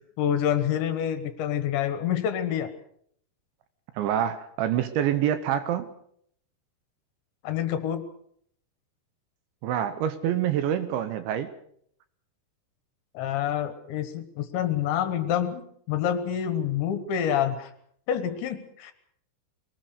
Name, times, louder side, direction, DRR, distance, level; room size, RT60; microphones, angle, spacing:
voice 1, 0.0-2.7 7.4-8.0 13.1-17.7 18.1-18.9, left 9 dB, 70° left, 10 dB, 3.2 m, -27 dB
voice 2, 4.0-5.9 9.6-11.5, right 10 dB, 75° right, 11 dB, 3.0 m, -26 dB
22.5 x 19.0 x 6.6 m, 0.66 s
omnidirectional pair, 5.9 m